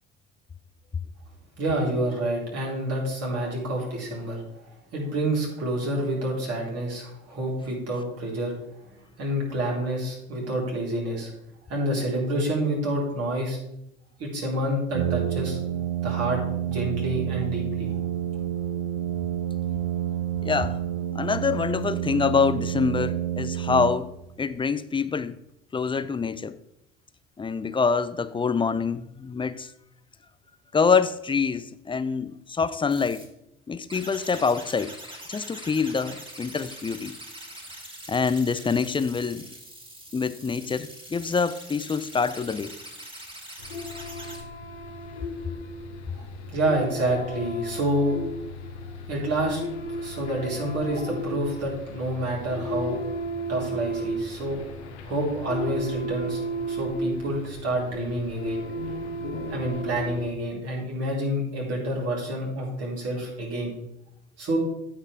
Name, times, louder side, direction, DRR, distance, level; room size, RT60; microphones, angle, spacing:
voice 1, 1.6-8.5 9.2-11.3 11.7-13.6 14.2-15.6 16.0-16.4 16.7-18.0 46.1-48.2 49.1-49.6 50.0-53.0 53.5-54.6 55.0-58.6 59.5-63.7 64.4-64.6, right 1 dB, 45° right, 4.3 m, -28 dB
Brass instrument, 14.9-24.4, right 11 dB, 80° right, 0.8 m, -29 dB
voice 2, 20.4-20.8 21.1-24.1 24.4-25.4 25.7-26.6 27.4-29.7 30.7-33.3 33.7-34.9 35.3-37.1 38.1-39.4 40.1-42.7, left 5 dB, 15° left, 0.5 m, -25 dB
sound 1, 32.9-33.3 33.9-44.4, right 1 dB, 15° right, 2.6 m, -43 dB
sound 2, 43.6-60.3, equal, 75° left, 1.3 m, -34 dB
15.5 x 5.6 x 3.5 m
figure-of-eight pair, 60°, 34 cm